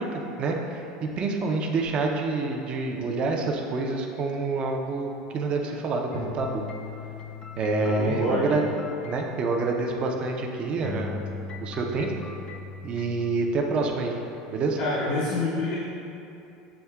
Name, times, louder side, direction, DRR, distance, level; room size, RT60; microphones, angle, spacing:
voice 1, 0.0-6.6 7.6-8.6 9.0-12.1 12.8-14.2 14.5-14.8, right 3 dB, 40° right, 1 dB, 0.5 m, -27 dB
sound 1, 6.1-10.5 10.8-13.5, left 5 dB, 35° left, 0.3 m, -39 dB
voice 2, 7.8-8.6 14.8-15.8, left 2 dB, 75° left, -7 dB, 0.7 m, -28 dB
7.0 x 2.7 x 2.3 m, 2.7 s
supercardioid pair, 110°, 3 cm